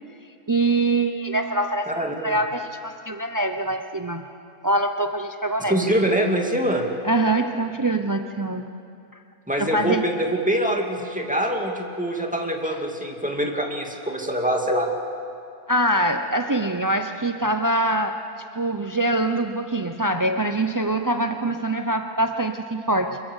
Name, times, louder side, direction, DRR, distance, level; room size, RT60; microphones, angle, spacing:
voice 1, 0.5-1.9 2.2-4.2 4.6-5.9 7.0-8.7 9.6-10.1 15.7-18.2 18.5-23.2, right 2 dB, 30° right, 7 dB, 0.4 m, -24 dB
voice 2, 1.9-2.4 5.7-6.9 9.5-14.9, right 1 dB, 5° right, 1 dB, 2.4 m, -24 dB
25.5 x 22.0 x 8.2 m, 2.5 s
omnidirectional pair, 1.6 m